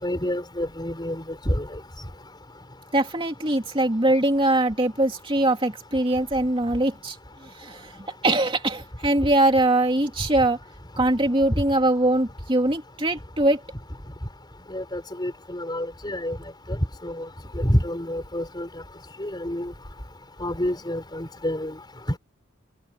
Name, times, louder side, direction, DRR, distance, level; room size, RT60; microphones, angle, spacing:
voice 1, 0.0-1.7 14.7-16.4 16.7-17.3 17.5-18.7 19.2-19.7 20.4-21.7, equal, 20° left, 5.7 m, -28 dB
voice 2, 2.9-7.2 7.5-8.0 8.2-10.6 11.0-13.6, right 1 dB, 25° right, 2.7 m, -22 dB
open air
head